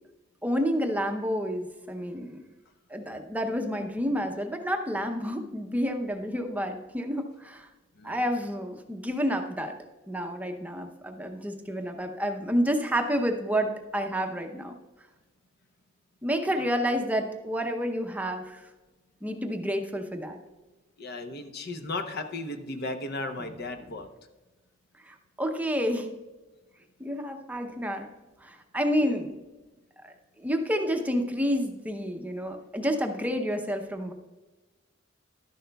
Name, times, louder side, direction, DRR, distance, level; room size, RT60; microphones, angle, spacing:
voice 1, 0.4-2.3 2.9-7.7 8.0-9.7 10.1-14.8 16.2-18.7 19.2-20.4 25.0-26.1 27.0-28.1 28.4-29.3 30.0-30.1 30.4-34.1, equal, 10° right, 4 dB, 0.7 m, -29 dB
voice 2, 21.0-24.1 29.0-29.2, left 2 dB, 55° left, 7 dB, 0.8 m, -35 dB
12.5 x 10.5 x 2.3 m, 1.2 s
head